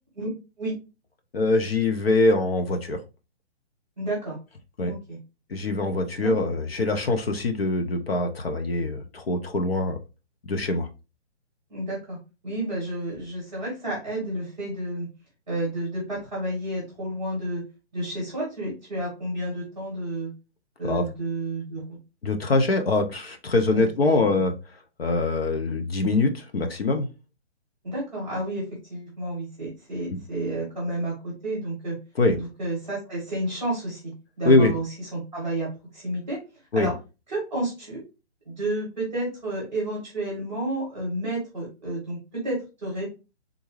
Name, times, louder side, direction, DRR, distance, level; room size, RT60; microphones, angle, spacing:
voice 1, 1.3-3.0 4.8-4.9 5.5-10.0 10.4-10.9 20.8-21.0 22.2-24.5 25.0-27.1 30.1-30.2 32.2-32.4 34.4-34.7 36.7-36.9, left 2 dB, 60° left, 6 dB, 0.7 m, -23 dB
voice 2, 4.0-4.4 4.8-5.2 6.2-6.3 11.7-12.2 12.4-15.1 15.5-17.6 17.9-20.3 20.8-21.8 23.7-24.4 27.8-32.0 32.3-34.1 34.4-36.4 36.7-36.9 37.3-38.0 38.4-43.0, right 1 dB, ahead, -10 dB, 0.7 m, -31 dB
3.6 x 2.6 x 3.1 m, 0.29 s
hypercardioid pair, 180°, 35 cm